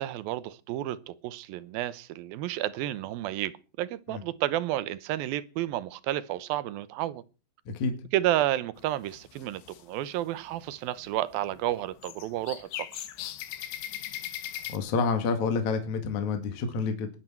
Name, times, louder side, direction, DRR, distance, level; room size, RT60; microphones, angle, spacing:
voice 1, 0.0-7.2 8.1-13.1, right 14 dB, 75° right, 2.3 m, -31 dB
sound 1, 8.8-9.8 10.3-10.7 11.0-14.8, left 12 dB, 80° left, 3.4 m, -39 dB
voice 2, 14.7-17.1, left 4 dB, 50° left, 3.0 m, -28 dB
19.5 x 12.5 x 4.6 m
omnidirectional pair, 5.0 m